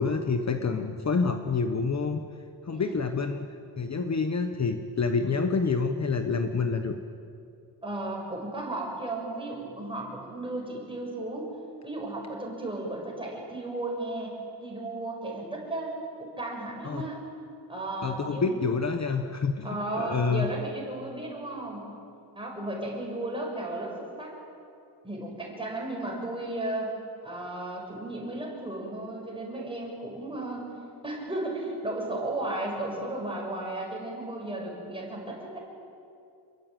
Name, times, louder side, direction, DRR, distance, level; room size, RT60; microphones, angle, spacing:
voice 1, 0.0-2.2 2.6-3.5 3.8-6.9 16.8-17.0 18.0-19.7 20.0-20.5, left 4 dB, 40° left, 6 dB, 1.2 m, -27 dB
voice 2, 0.6-0.9 2.7-3.1 7.8-11.5 11.8-14.3 14.6-15.9 16.2-17.2 17.7-18.6 19.6-21.9 22.3-24.3 25.0-26.9 27.2-30.7 31.0-35.6, right 2 dB, 10° right, -1 dB, 6.7 m, -34 dB
28.0 x 22.0 x 9.2 m, 2.5 s
wide cardioid pair, 165°, 43 cm